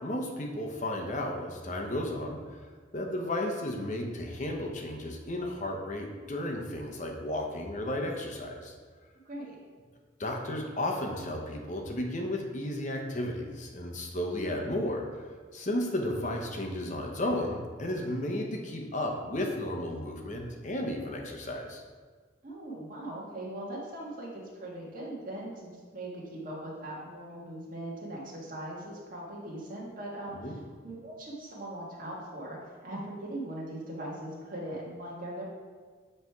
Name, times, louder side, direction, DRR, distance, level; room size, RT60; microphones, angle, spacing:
voice 1, 0.0-2.4 2.9-8.7 10.2-15.2 15.5-21.8 30.4-30.6, left 1 dB, 40° left, 1 dB, 0.8 m, -33 dB
voice 2, 22.4-35.4, right 1 dB, 45° right, -4 dB, 1.7 m, -40 dB
8.2 x 3.4 x 4.6 m, 1.5 s
head